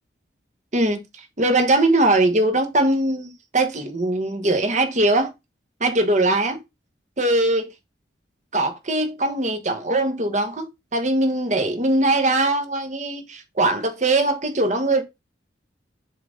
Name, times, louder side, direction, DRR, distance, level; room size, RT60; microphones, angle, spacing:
voice 1, 1.4-5.3 5.8-6.6 7.2-7.7 8.5-15.0, right 2 dB, 40° right, 1.2 m, -21 dB
7.3 x 3.9 x 3.7 m
head